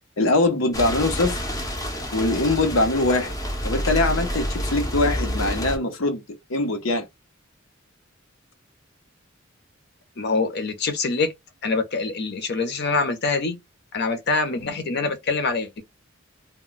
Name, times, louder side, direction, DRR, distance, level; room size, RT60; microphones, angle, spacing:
voice 1, 0.2-1.5 2.1-3.3 3.6-6.2 6.5-7.0, left 2 dB, 85° left, 0.8 m, -22 dB
sound 1, 0.7-5.8, equal, 15° left, 0.6 m, -28 dB
voice 2, 10.2-11.3 11.6-13.6 13.9-15.8, left 4 dB, 55° left, 0.8 m, -25 dB
2.2 x 2.2 x 3.8 m
head